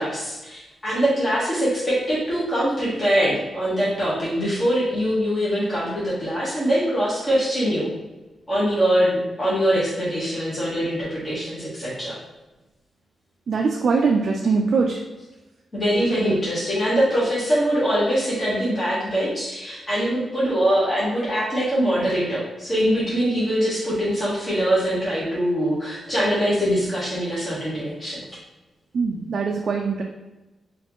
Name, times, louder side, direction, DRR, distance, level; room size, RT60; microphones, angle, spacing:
voice 1, 0.0-7.9 8.5-12.1 15.7-28.2, equal, 20° left, -10 dB, 1.2 m, -23 dB
voice 2, 13.5-15.0 16.2-16.3 28.9-30.0, right 4 dB, 55° right, 1 dB, 0.3 m, -22 dB
4.1 x 2.5 x 2.9 m, 1.1 s
wide cardioid pair, 155°, 0 cm